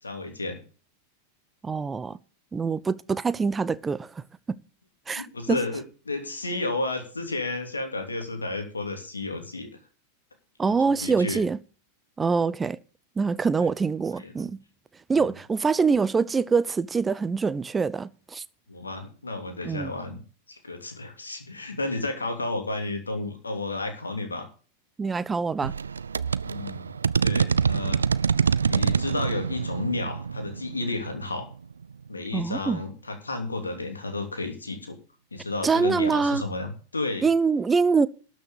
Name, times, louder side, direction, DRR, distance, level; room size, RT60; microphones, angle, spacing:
voice 1, 0.0-0.6 5.1-9.7 10.7-11.4 13.6-13.7 14.2-14.3 15.1-15.3 18.7-20.2 20.5-24.5 26.4-26.9 27.2-28.0 28.6-31.5 32.1-35.0 35.3-37.3, left 2 dB, 75° left, 2.9 m, -32 dB
voice 2, 1.6-2.2 2.5-4.2 4.5-4.6 5.1-5.6 10.6-11.6 12.2-12.8 13.2-14.6 15.1-18.4 19.6-19.9 25.0-25.7 32.3-32.8 35.6-36.4 37.2-38.1, right 5 dB, 15° right, 0.5 m, -24 dB
sound 1, 25.6-32.1, right 6 dB, 75° right, 0.4 m, -26 dB
12.5 x 6.4 x 6.9 m
figure-of-eight pair, 90°, 0 cm